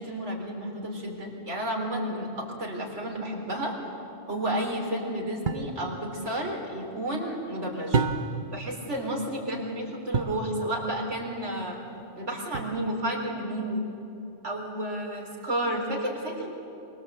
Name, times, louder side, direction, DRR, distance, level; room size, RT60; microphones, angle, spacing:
voice 1, 0.0-3.7 4.3-8.0 8.5-11.8 12.2-13.8 14.4-16.5, right 1 dB, 80° right, 0 dB, 4.4 m, -31 dB
sound 1, 5.5-5.8 7.9-8.5 10.1-10.5 12.5-13.1, right 4 dB, 45° right, 1.1 m, -28 dB
24.5 x 24.0 x 8.1 m, 2.8 s
omnidirectional pair, 1.2 m